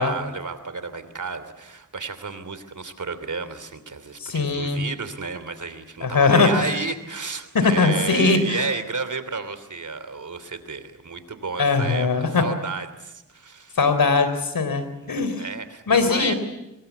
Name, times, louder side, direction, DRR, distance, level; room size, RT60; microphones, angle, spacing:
voice 1, 0.0-13.8 15.0-16.3, right 4 dB, 60° right, 12 dB, 3.1 m, -32 dB
voice 2, 4.2-4.8 6.0-6.5 7.5-8.6 11.6-12.4 13.8-15.4 15.9-16.3, left 4 dB, 85° left, 10 dB, 3.7 m, -20 dB
24.5 x 22.5 x 8.4 m, 0.93 s
cardioid pair, 45°, 34 cm